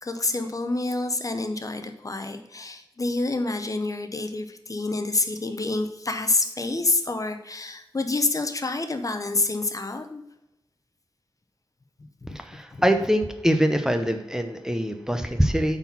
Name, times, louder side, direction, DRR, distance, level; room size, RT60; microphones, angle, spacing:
voice 1, 0.0-10.2 12.2-12.3, left 2 dB, 40° left, 7 dB, 0.8 m, -27 dB
voice 2, 12.3-15.8, equal, 5° right, 6 dB, 0.7 m, -24 dB
8.8 x 4.2 x 5.5 m, 0.88 s
wide cardioid pair, 95°, 9 cm